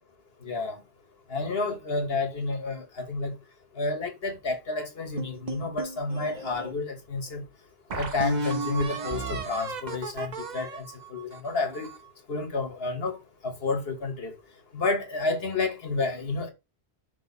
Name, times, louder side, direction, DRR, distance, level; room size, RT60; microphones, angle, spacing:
voice 1, 0.4-0.8 1.3-3.4 3.8-7.4 7.9-10.9 11.1-11.9 12.3-13.2 13.4-14.3 14.7-16.5, left 3 dB, 70° left, 1.7 m, -30 dB
sound 1, 5.2-6.7 7.3-7.4 7.9-12.1, right 3 dB, 45° right, 1.0 m, -34 dB
5.9 x 4.2 x 4.1 m
omnidirectional pair, 1.1 m